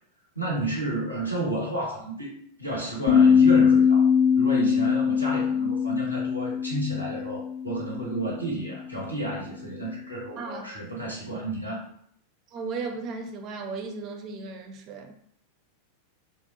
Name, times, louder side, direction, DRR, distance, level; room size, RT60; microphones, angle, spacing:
voice 1, 0.3-4.1 4.3-11.8, right 2 dB, 90° left, 0.9 m, -31 dB
sound 1, 3.1-8.2, left 7 dB, 60° left, 0.3 m, -21 dB
voice 2, 10.4-10.7 12.5-15.1, right 4 dB, 35° right, 0.4 m, -35 dB
2.7 x 2.0 x 2.5 m
figure-of-eight pair, 90°, 0 cm